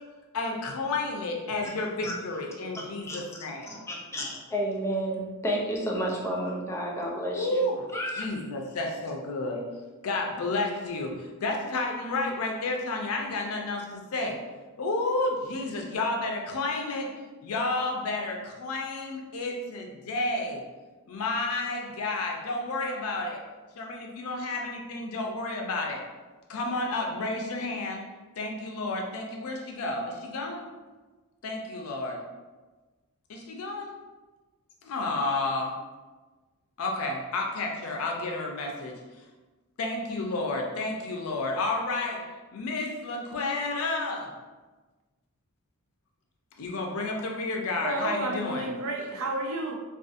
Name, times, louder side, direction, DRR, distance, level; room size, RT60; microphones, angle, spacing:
voice 1, 0.3-3.8 7.3-7.8 8.2-9.6 10.0-14.4 14.8-17.1 17.4-20.6 21.1-23.4 23.8-26.0 26.5-28.0 28.4-30.6 31.4-32.2 33.3-33.9 34.8-35.8 36.8-39.0 39.8-44.3 46.6-48.7, left 2 dB, 70° left, 1 dB, 0.5 m, -31 dB
voice 2, 2.7-3.2 3.7-7.6 7.9-8.3, equal, 15° left, -2 dB, 0.4 m, -31 dB
voice 3, 47.8-49.7, right 2 dB, 65° right, 0 dB, 0.5 m, -31 dB
2.5 x 2.3 x 2.5 m, 1.3 s
head